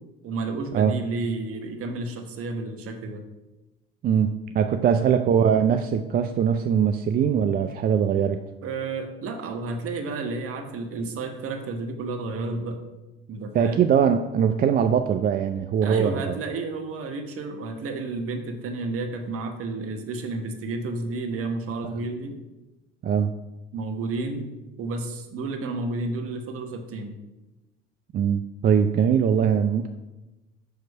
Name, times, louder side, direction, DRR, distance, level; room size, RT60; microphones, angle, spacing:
voice 1, 0.2-3.2 4.7-5.0 8.6-12.8 13.3-13.9 15.8-22.4 23.7-24.5 24.8-27.2, right 3 dB, 45° right, 4 dB, 1.1 m, -31 dB
voice 2, 4.0-8.4 13.5-16.3 21.8-21.9 23.0-23.3 28.1-29.9, right 7 dB, 30° right, 7 dB, 0.4 m, -22 dB
6.7 x 3.1 x 5.3 m, 1.1 s
hypercardioid pair, 65°, 30 cm